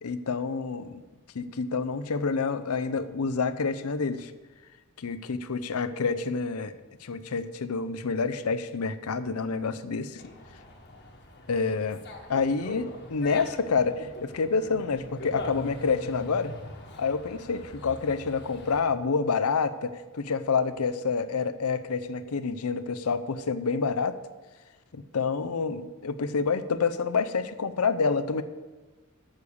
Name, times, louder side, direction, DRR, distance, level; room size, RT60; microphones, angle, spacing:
voice 1, 0.0-1.0 1.3-4.3 5.0-6.7 7.0-10.2 11.5-12.0 12.3-16.5 17.0-24.2 24.9-28.4, left 5 dB, 85° left, 12 dB, 0.6 m, -28 dB
Dog, 10.2-18.8, left 1 dB, 55° left, 1.4 m, -42 dB
9.7 x 6.6 x 7.0 m, 1.3 s
head